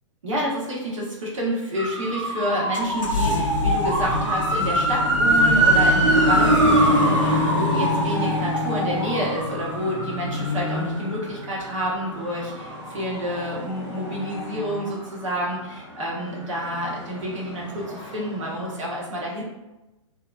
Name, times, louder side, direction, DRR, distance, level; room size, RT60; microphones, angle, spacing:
voice 1, 0.2-19.4, equal, 75° right, -4 dB, 1.1 m, -29 dB
sound 1, 1.7-15.5 15.9-18.5 18.7-18.8, right 1 dB, 25° right, 1.0 m, -24 dB
sound 2, 2.7-14.9, left 3 dB, 80° left, 0.5 m, -28 dB
2.8 x 2.0 x 2.3 m, 1.0 s
hypercardioid pair, 130°, 16 cm